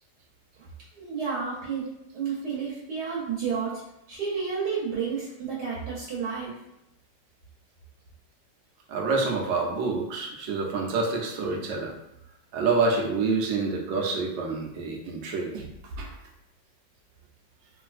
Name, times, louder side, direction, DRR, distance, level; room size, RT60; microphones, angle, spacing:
voice 1, 0.9-1.9 2.1-3.8 4.1-6.6, right 6 dB, 70° right, -6 dB, 1.3 m, -31 dB
voice 2, 8.9-11.9 12.5-15.6 16.0-16.1, right 4 dB, 85° right, 0 dB, 1.3 m, -27 dB
3.1 x 2.5 x 2.4 m, 0.85 s
omnidirectional pair, 1.9 m